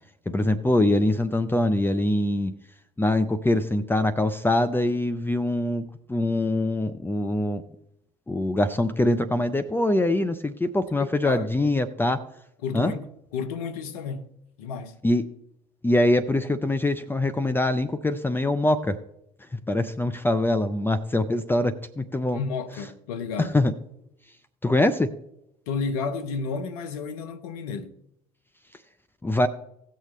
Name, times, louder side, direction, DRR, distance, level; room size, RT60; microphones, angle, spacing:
voice 1, 0.3-2.5 3.0-7.6 8.3-12.2 12.7-12.9 15.0-15.2 15.8-19.0 19.7-22.4 23.4-23.7 24.6-25.1 29.2-29.5, left 1 dB, 10° left, 0.7 m, -23 dB
voice 2, 11.0-11.5 12.6-13.0 13.3-14.3 14.6-15.0 22.3-23.6 25.7-27.9, left 5 dB, 75° left, 0.9 m, -31 dB
17.0 x 6.6 x 3.2 m
hypercardioid pair, 65°, 19 cm